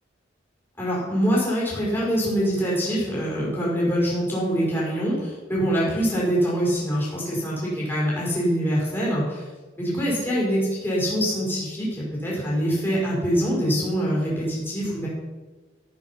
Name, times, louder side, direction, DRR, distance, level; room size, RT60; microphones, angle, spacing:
voice 1, 0.8-9.4 9.7-15.1, equal, 10° left, -6 dB, 5.4 m, -24 dB
15.0 x 9.1 x 5.8 m, 1.3 s
head